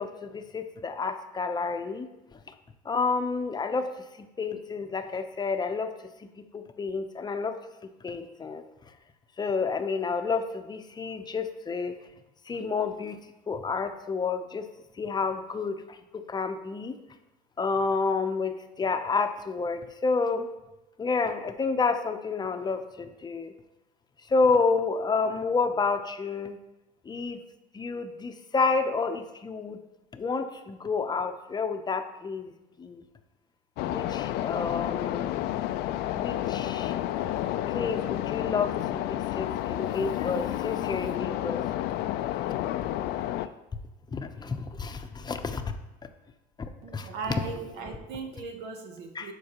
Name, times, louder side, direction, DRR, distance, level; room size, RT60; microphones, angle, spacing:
voice 1, 0.0-2.4 2.8-5.9 6.2-6.3 6.5-7.6 8.0-8.6 9.4-12.0 12.5-13.2 13.5-14.7 15.0-17.0 17.6-20.5 21.0-23.5 24.3-26.6 27.0-27.4 27.7-29.8 30.1-32.5 32.8-33.0 33.9-35.4 36.1-37.0 37.7-41.6 44.1-45.7 46.6-47.1 49.1-49.3, left 4 dB, 25° left, 7 dB, 0.7 m, -30 dB
sound 1, 33.8-43.5, left 13 dB, 70° left, 0.4 m, -30 dB
voice 2, 46.8-49.3, right 4 dB, 75° right, 4 dB, 1.1 m, -38 dB
11.5 x 4.6 x 3.0 m, 0.97 s
supercardioid pair, 95°, 17 cm